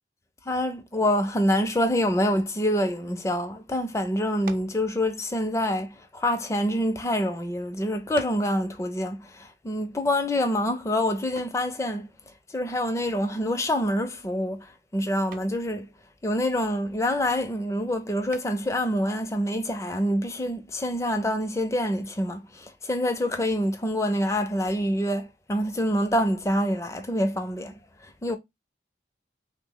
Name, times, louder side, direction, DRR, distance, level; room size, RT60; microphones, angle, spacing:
voice 1, 0.5-12.1 12.5-15.9 16.2-27.8 28.0-28.4, left 1 dB, 15° left, 0.4 m, -26 dB
sound 1, 4.4-4.8 5.8-6.9 7.6-7.7 8.1-8.5 11.3-11.7 13.6-14.0 14.3-14.7 15.3-15.6 18.3-18.8, right 4 dB, 50° right, 0.4 m, -44 dB
3.3 x 2.0 x 3.6 m
head